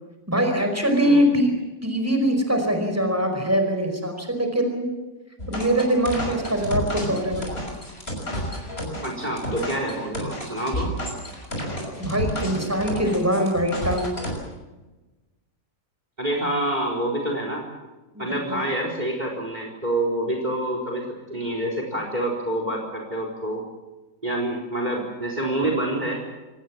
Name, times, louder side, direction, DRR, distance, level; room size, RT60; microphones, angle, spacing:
voice 1, 0.3-1.5 1.8-4.9 5.5-7.5 12.0-14.1 18.1-18.6, equal, 10° right, 5 dB, 5.0 m, -23 dB
sound 1, 5.4-14.4, equal, 45° left, 6.5 m, -31 dB
voice 2, 9.0-10.9 16.2-17.7 18.2-23.6 24.2-26.2, right 1 dB, 30° right, 2 dB, 4.4 m, -27 dB
25.5 x 19.5 x 7.4 m, 1.1 s
omnidirectional pair, 1.5 m